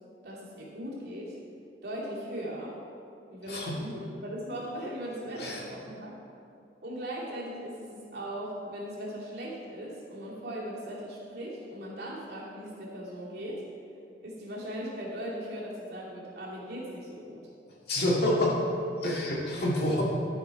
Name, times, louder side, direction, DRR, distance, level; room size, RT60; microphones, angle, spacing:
voice 1, 0.2-1.4 1.8-2.8 3.3-6.1 6.8-13.6 14.2-17.5, equal, 65° right, -6 dB, 2.4 m, -38 dB
voice 2, 3.5-3.8 5.4-5.6 17.9-18.6 19.0-20.0, left 1 dB, 60° left, -4 dB, 2.0 m, -27 dB
13.5 x 4.9 x 4.5 m, 2.5 s
head